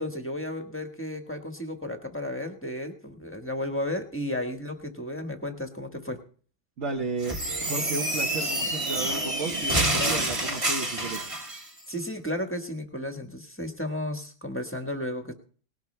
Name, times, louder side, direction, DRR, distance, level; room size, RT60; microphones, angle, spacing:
voice 1, 0.0-6.2 11.9-15.3, left 1 dB, 10° left, 5 dB, 1.1 m, -33 dB
voice 2, 6.8-11.3, right 3 dB, 45° right, 1 dB, 1.2 m, -33 dB
sound 1, 7.2-11.6, right 1 dB, 20° right, 1.4 m, -28 dB
19.0 x 11.5 x 3.3 m, 0.43 s
omnidirectional pair, 2.1 m